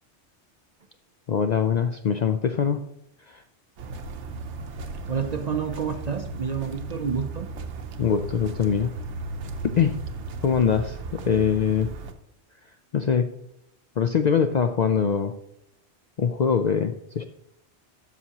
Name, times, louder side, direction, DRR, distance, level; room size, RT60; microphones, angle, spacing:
voice 1, 1.3-2.9 3.3-3.4 8.0-8.9 9.8-10.0 10.4-11.9 12.9-13.3 14.0-15.4 16.2-17.3, left 7 dB, 60° left, 7 dB, 0.4 m, -23 dB
sound 1, 3.8-12.1, right 3 dB, 85° right, 1.1 m, -36 dB
voice 2, 5.1-7.5, right 6 dB, 50° right, 7 dB, 0.5 m, -29 dB
12.5 x 5.8 x 2.9 m, 0.80 s
omnidirectional pair, 1.2 m